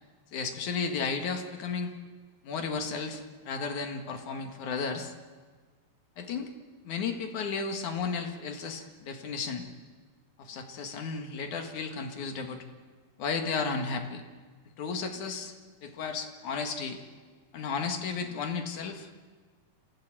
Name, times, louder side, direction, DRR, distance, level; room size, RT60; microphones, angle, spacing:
voice 1, 0.3-1.9 2.4-5.1 6.2-6.5 6.8-9.7 10.4-12.6 13.2-14.2 14.8-15.5 15.8-17.0 17.5-19.1, left 5 dB, 60° left, 4 dB, 3.1 m, -33 dB
27.5 x 16.0 x 8.9 m, 1.4 s
omnidirectional pair, 4.2 m